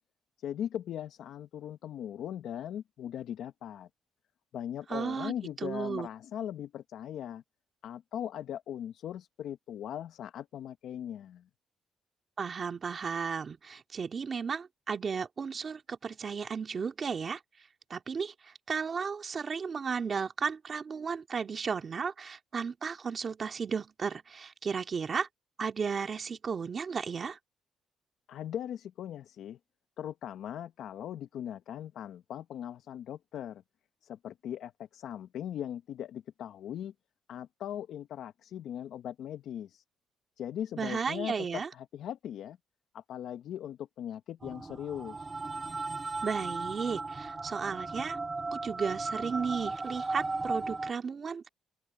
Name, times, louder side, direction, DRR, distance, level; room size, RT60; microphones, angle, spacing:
voice 1, 0.4-3.9 4.5-7.4 7.8-11.5 28.3-29.6 30.0-33.6 34.0-36.9 37.3-39.8 40.4-42.6 42.9-45.3, left 10 dB, 75° left, 0.7 m, -39 dB
voice 2, 4.9-5.3 5.6-6.1 12.4-17.4 17.9-25.3 25.6-27.4 40.8-41.7 46.2-48.2 48.5-51.5, right 6 dB, 45° right, 2.6 m, -34 dB
sound 1, 44.4-50.9, right 3 dB, 25° right, 0.9 m, -36 dB
cardioid pair, 90°, 0 cm